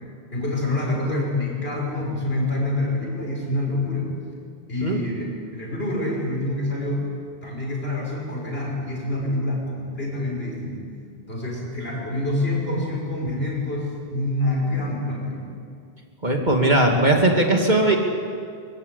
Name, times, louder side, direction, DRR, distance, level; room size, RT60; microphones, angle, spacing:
voice 1, 0.3-4.1 4.7-5.3 5.5-10.9 11.3-15.6, left 1 dB, 75° left, -2 dB, 6.5 m, -26 dB
voice 2, 16.2-18.0, right 2 dB, 45° right, 1 dB, 2.6 m, -19 dB
23.5 x 22.5 x 8.5 m, 2.3 s
omnidirectional pair, 1.0 m